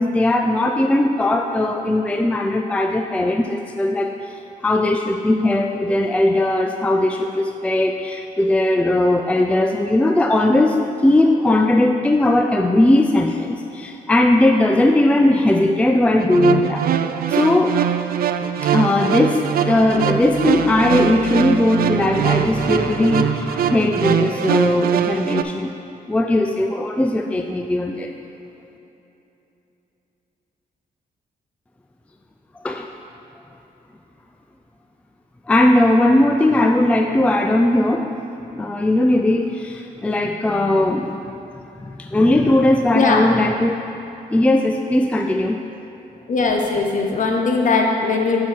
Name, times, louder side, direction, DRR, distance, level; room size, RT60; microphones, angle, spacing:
voice 1, 0.0-4.4 4.6-16.8 17.3-17.8 18.6-25.7 26.1-28.1 32.6-32.9 35.5-38.1 38.5-41.4 41.8-43.8 44.3-45.6, left 1 dB, 10° left, 4 dB, 0.3 m, -18 dB
sound 1, 16.2-25.4, right 9 dB, 65° right, 0.4 m, -22 dB
voice 2, 46.3-48.4, left 4 dB, 50° left, 1 dB, 1.0 m, -19 dB
7.3 x 4.6 x 5.6 m, 3.0 s
cardioid pair, 95°, 16 cm